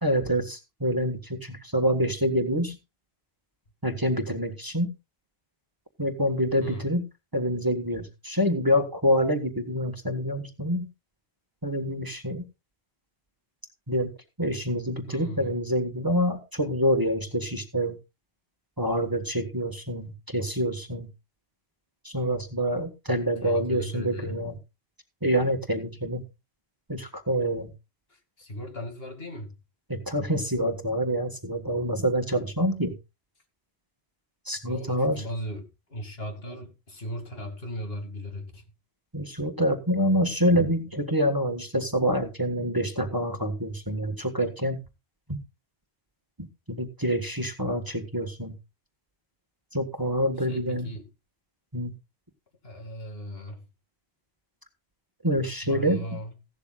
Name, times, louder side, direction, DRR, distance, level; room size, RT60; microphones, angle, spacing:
voice 1, 0.0-2.8 3.8-4.9 6.0-7.0 7.3-10.9 11.6-12.4 13.9-14.1 14.4-18.0 18.8-21.1 22.0-24.6 25.2-26.2 26.9-27.7 29.9-32.9 34.4-35.2 39.1-44.8 45.3-45.4 46.4-48.5 49.7-50.9 51.7-51.9 55.2-56.0, equal, 20° right, 1.4 m, -26 dB
voice 2, 15.1-15.5 23.4-24.4 28.1-29.5 34.7-38.6 50.5-51.1 52.6-53.7 55.6-56.3, equal, 65° left, 2.6 m, -37 dB
16.0 x 11.5 x 2.4 m
omnidirectional pair, 1.1 m